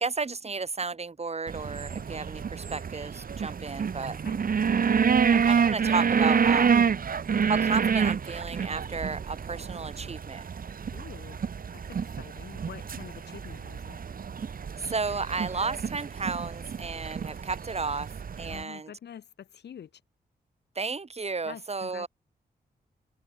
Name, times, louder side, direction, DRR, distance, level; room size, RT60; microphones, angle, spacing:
voice 1, 0.0-4.2 5.3-6.7 7.4-10.4 14.8-18.1 18.4-18.9 20.8-22.1, right 4 dB, 40° right, 3.6 m, -33 dB
sound 1, 1.5-18.6, right 6 dB, 55° right, 1.9 m, -28 dB
voice 2, 10.9-11.4 11.7-14.0 18.5-20.0 21.4-22.1, left 9 dB, 80° left, 4.1 m, -46 dB
cardioid pair, 65°, 17 cm